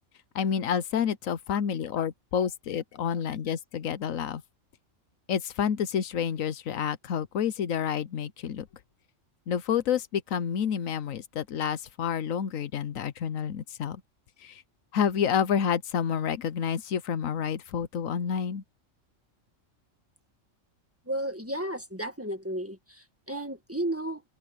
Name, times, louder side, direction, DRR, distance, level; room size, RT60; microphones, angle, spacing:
voice 1, 0.3-4.4 5.3-8.7 9.5-14.0 14.4-14.6 14.9-18.6, left 8 dB, 90° left, 1.3 m, -29 dB
voice 2, 21.1-24.2, right 1 dB, 10° right, 1.6 m, -33 dB
open air
omnidirectional pair, 1.3 m